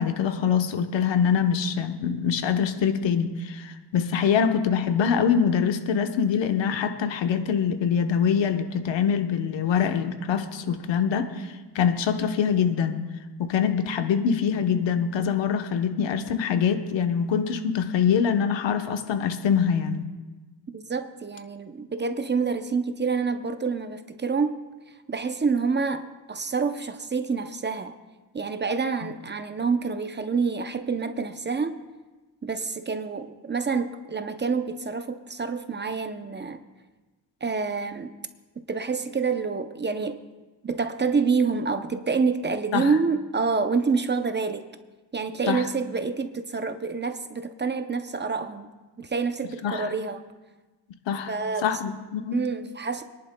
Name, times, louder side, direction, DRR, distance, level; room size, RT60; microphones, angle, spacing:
voice 1, 0.0-13.0 13.4-20.0 42.7-42.9 45.5-45.7 49.6-49.9 51.1-51.3 51.6-52.4, left 7 dB, 85° left, 7 dB, 1.0 m, -24 dB
voice 2, 20.7-24.6 25.1-27.9 28.3-31.8 32.4-36.6 37.4-38.1 38.7-40.2 40.6-44.7 45.1-48.7 49.0-50.2 51.3-51.8 52.3-53.0, right 5 dB, 25° right, 9 dB, 0.6 m, -27 dB
27.0 x 11.0 x 2.2 m, 1.2 s
cardioid pair, 120°, 43 cm